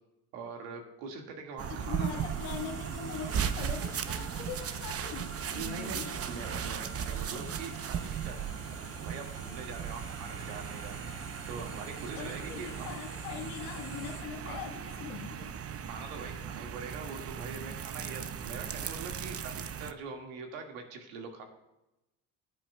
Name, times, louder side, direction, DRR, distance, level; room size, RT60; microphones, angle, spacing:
voice 1, 0.3-2.2 5.5-8.3 8.9-10.9 11.5-12.9 14.5-14.6 15.9-21.4, right 4 dB, 80° right, 3 dB, 1.9 m, -43 dB
sound 1, 1.6-19.9, right 8 dB, 40° right, 0.7 m, -37 dB
voice 2, 1.7-6.1 12.1-15.5, left 8 dB, 80° left, 3 dB, 1.5 m, -42 dB
sound 2, 1.8-14.2, left 1 dB, 10° left, 2.6 m, -49 dB
16.5 x 8.9 x 2.3 m, 0.95 s
hypercardioid pair, 65°, 38 cm